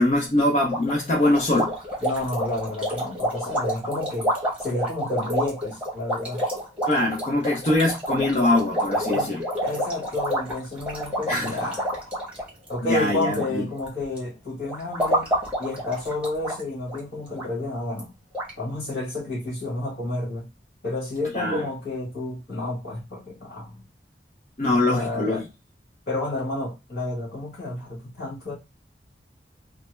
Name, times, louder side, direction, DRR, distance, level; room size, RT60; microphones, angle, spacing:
voice 1, 0.0-1.7 6.9-9.5 11.3-11.6 12.9-13.7 21.3-21.6 24.6-25.4, left 2 dB, 40° left, 0.5 m, -23 dB
sound 1, 0.7-13.5 13.7-14.2 14.7-16.6 16.9-17.0 17.4-17.5 18.0-18.1 18.3-18.5, equal, 5° right, 1.0 m, -28 dB
voice 2, 2.0-4.3 4.6-6.4 9.1-9.3 9.6-11.9 12.7-15.3 15.6-18.1 18.6-20.5 20.8-23.8 24.7-25.4 26.1-28.6, left 2 dB, 60° left, 1.5 m, -30 dB
3.3 x 2.1 x 3.1 m
head